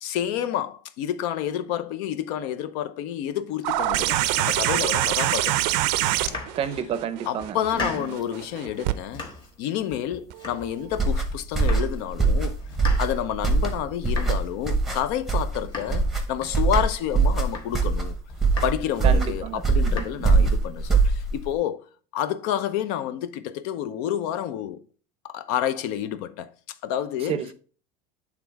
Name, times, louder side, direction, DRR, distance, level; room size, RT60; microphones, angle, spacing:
voice 1, 0.0-5.7 6.3-6.4 7.3-9.2 9.6-12.6 13.0-18.1 18.6-21.9 22.1-24.8 25.2-26.5 26.8-27.4, left 10 dB, 65° left, 0.6 m, -29 dB
sound 1, 3.6-8.9 10.3-10.4, right 15 dB, 85° right, 0.5 m, -25 dB
Domestic sounds home sounds, 6.1-7.0 7.4-8.3 8.7-9.6 9.9-11.0 11.3-12.1 12.3-16.9 17.3-18.0 18.3-19.0 19.4-20.0, left 3 dB, 20° left, 1.3 m, -39 dB
voice 2, 6.5-8.2 19.0-20.5 27.3-27.5, right 8 dB, 25° right, 0.5 m, -31 dB
sound 2, 10.9-21.5, right 4 dB, ahead, 0.8 m, -23 dB
8.4 x 3.6 x 4.5 m
cardioid pair, 170°, 21 cm